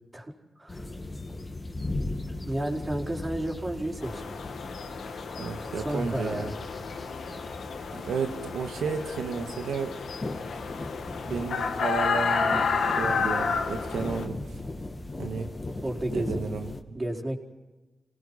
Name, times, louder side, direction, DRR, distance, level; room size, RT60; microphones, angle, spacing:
sound 1, 0.7-16.8, left 2 dB, 35° left, 2.7 m, -38 dB
voice 1, 2.3-4.3 5.8-6.6 15.8-16.4 16.9-17.4, right 1 dB, 25° right, 0 dB, 4.7 m, -32 dB
sound 2, 4.0-14.3, left 5 dB, 80° left, 2.0 m, -31 dB
voice 2, 5.4-6.5 7.9-10.0 11.2-14.4 15.2-15.5 16.1-17.0, right 5 dB, 85° right, 5 dB, 1.9 m, -33 dB
29.0 x 18.5 x 5.7 m, 1.2 s
cardioid pair, 55°, 0 cm